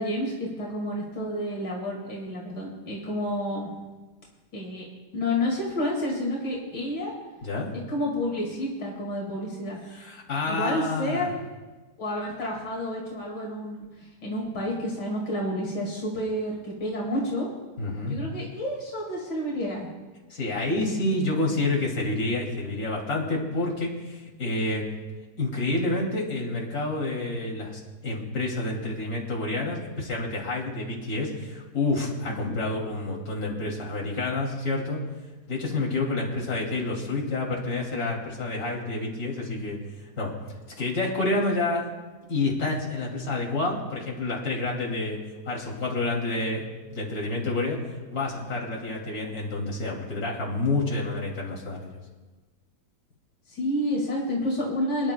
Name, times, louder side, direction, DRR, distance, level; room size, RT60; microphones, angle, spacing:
voice 1, 0.0-3.7 4.5-4.9 5.1-7.1 7.9-9.8 10.5-11.4 12.0-17.5 18.1-19.9 32.3-32.6 53.5-55.1, left 1 dB, 85° left, -2 dB, 2.7 m, -30 dB
voice 2, 9.9-11.3 17.8-18.2 20.3-24.8 25.4-35.0 35.5-39.8 40.2-40.3 40.8-41.9 42.3-45.2 45.5-52.0, left 2 dB, 60° left, -3 dB, 3.1 m, -28 dB
27.0 x 10.5 x 2.2 m, 1.3 s
omnidirectional pair, 1.8 m